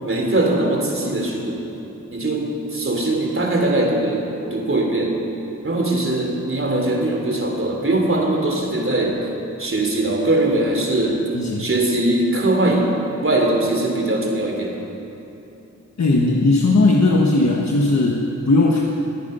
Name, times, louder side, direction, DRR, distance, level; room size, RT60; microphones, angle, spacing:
voice 1, 0.0-1.6 2.1-5.2 5.6-9.2 9.6-11.2 11.6-14.8, right 2 dB, 45° right, 0 dB, 3.1 m, -21 dB
voice 2, 11.3-11.7 16.0-18.8, left 2 dB, 60° left, -1 dB, 1.3 m, -17 dB
22.5 x 9.1 x 5.6 m, 3.0 s
cardioid pair, 55°, 30 cm